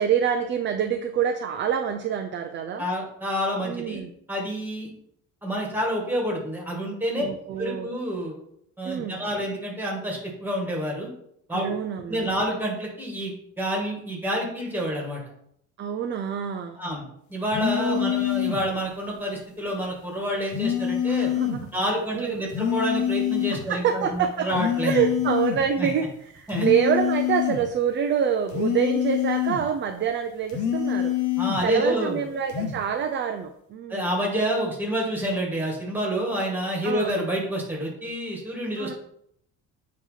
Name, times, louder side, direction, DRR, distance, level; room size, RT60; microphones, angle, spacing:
voice 1, 0.0-2.9 3.6-4.1 7.2-7.9 8.8-9.2 11.5-12.3 15.8-16.8 17.8-18.1 21.1-21.7 22.1-22.5 23.5-31.1 31.6-34.1 36.8-37.1 38.8-38.9, right 8 dB, 35° right, 5 dB, 0.5 m, -26 dB
voice 2, 2.8-4.0 4.3-4.9 5.4-7.3 7.6-8.3 8.8-11.1 11.5-11.7 12.1-15.2 16.8-17.0 17.3-21.3 21.7-25.0 25.8-25.9 26.5-26.7 31.4-32.2 33.9-38.9, equal, 5° right, -1 dB, 1.8 m, -28 dB
sound 1, 17.5-18.7 20.5-21.7 22.5-23.7 24.5-25.7 26.5-27.7 28.5-29.7 30.5-31.7 32.5-32.8, left 10 dB, 65° left, 1.1 m, -26 dB
8.1 x 3.1 x 5.7 m, 0.71 s
cardioid pair, 165°, 32 cm